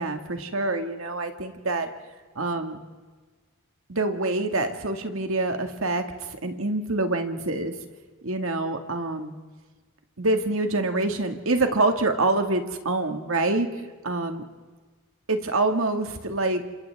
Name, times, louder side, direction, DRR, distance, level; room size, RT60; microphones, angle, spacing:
voice 1, 0.0-1.9 2.4-2.8 3.9-7.7 8.2-9.3 10.2-13.7 14.0-14.4 15.3-16.6, right 2 dB, 75° right, 5 dB, 2.1 m, -26 dB
29.5 x 26.5 x 3.6 m, 1.4 s
head